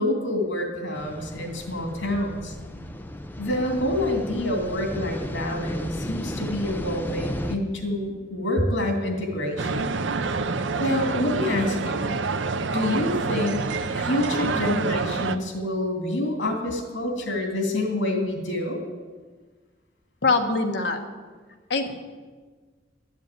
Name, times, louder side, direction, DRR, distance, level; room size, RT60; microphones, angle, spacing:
voice 1, 0.0-2.5 3.4-9.9 10.8-12.2 12.7-13.6 13.9-18.8, left 1 dB, 85° left, 3 dB, 2.7 m, -27 dB
sound 1, 0.9-7.6, equal, 10° left, 0.6 m, -34 dB
sound 2, 9.6-15.4, right 4 dB, 80° right, 0.6 m, -27 dB
voice 2, 20.2-21.0 21.7-22.0, left 3 dB, 65° left, 4 dB, 1.4 m, -24 dB
12.0 x 7.3 x 9.1 m, 1.4 s
head